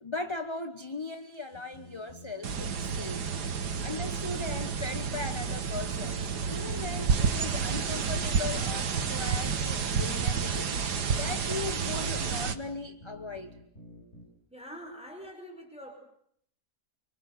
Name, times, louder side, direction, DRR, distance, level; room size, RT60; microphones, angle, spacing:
voice 1, 0.0-3.2 3.8-6.2 6.4-13.5, left 3 dB, 20° left, 9 dB, 1.0 m, -38 dB
sound 1, 1.5-14.2, left 1 dB, 40° left, 7.9 m, -50 dB
sound 2, 2.4-12.6, right 6 dB, 85° right, 2.0 m, -30 dB
sound 3, 4.5-12.5, right 4 dB, 25° right, 1.3 m, -46 dB
voice 2, 14.5-16.0, equal, 5° right, 3 dB, 4.8 m, -44 dB
25.5 x 25.0 x 7.8 m, 0.69 s
omnidirectional pair, 1.7 m